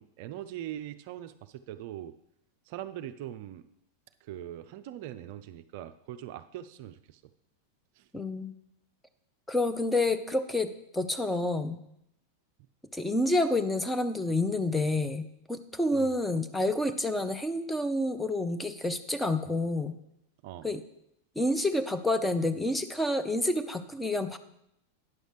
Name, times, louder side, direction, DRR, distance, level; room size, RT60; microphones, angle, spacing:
voice 1, 0.0-2.1 2.7-3.6 4.2-7.2 8.0-8.1 15.9-16.2 20.4-20.7, right 12 dB, 50° right, 10 dB, 0.4 m, -41 dB
voice 2, 8.1-8.6 9.5-11.8 12.9-19.9 20.6-20.8 21.4-24.4, left 1 dB, 5° left, 9 dB, 0.6 m, -29 dB
9.6 x 6.4 x 4.9 m, 0.79 s
figure-of-eight pair, 90°, 0 cm